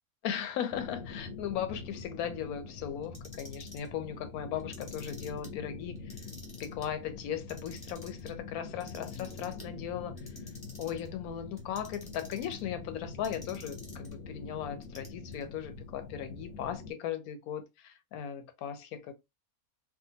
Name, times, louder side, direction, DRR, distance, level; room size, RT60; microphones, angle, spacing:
voice 1, 0.2-6.2 6.6-10.2 10.8-19.1, left 9 dB, 85° left, 1.1 m, -37 dB
sound 1, 0.7-16.9, left 4 dB, 65° left, 0.8 m, -45 dB
Clock, 3.0-3.9 4.6-5.5 6.0-6.9 7.3-8.3 8.8-9.7 10.2-11.1 11.6-12.6 13.2-14.1 14.8-15.4, left 1 dB, 20° left, 0.7 m, -51 dB
3.5 x 2.2 x 2.7 m
omnidirectional pair, 1.5 m